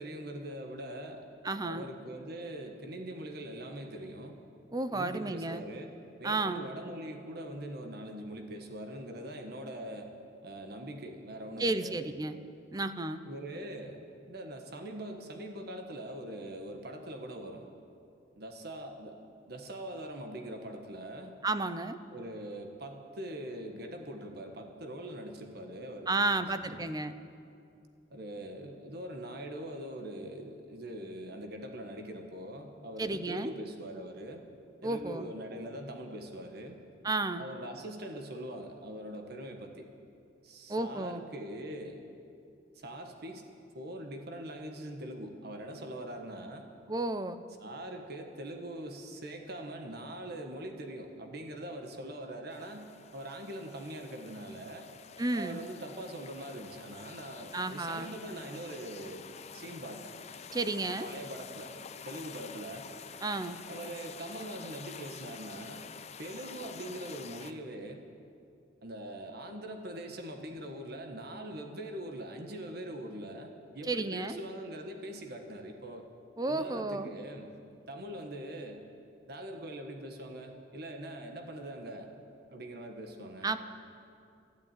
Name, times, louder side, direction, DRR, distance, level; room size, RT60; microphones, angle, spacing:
voice 1, 0.0-1.3 1.6-4.4 4.9-5.9 6.2-10.1 10.4-12.1 13.2-14.0 14.3-17.7 18.4-19.2 19.5-21.3 22.1-26.9 28.1-34.4 34.8-36.8 37.4-39.9 40.4-42.1 42.7-43.5 43.7-46.7 47.6-54.9 55.3-59.3 59.5-60.1 60.8-61.7 62.0-62.9 63.7-68.0 68.8-76.1 76.5-77.5 77.9-78.8 79.3-82.1 82.5-83.6, right 1 dB, 55° right, 4 dB, 1.3 m, -42 dB
voice 2, 1.4-1.9 4.7-5.6 6.2-6.7 11.6-12.4 12.7-13.2 21.4-22.0 26.1-27.1 33.0-33.5 34.8-35.2 37.0-37.5 40.7-41.2 46.9-47.4 55.2-55.6 57.5-58.1 60.5-61.1 63.2-63.6 73.9-74.4 76.4-77.1 83.4-83.6, right 2 dB, 20° right, 11 dB, 0.5 m, -32 dB
sound 1, 52.5-67.5, left 6 dB, 35° left, 0.5 m, -48 dB
13.5 x 12.0 x 9.1 m, 2.5 s
head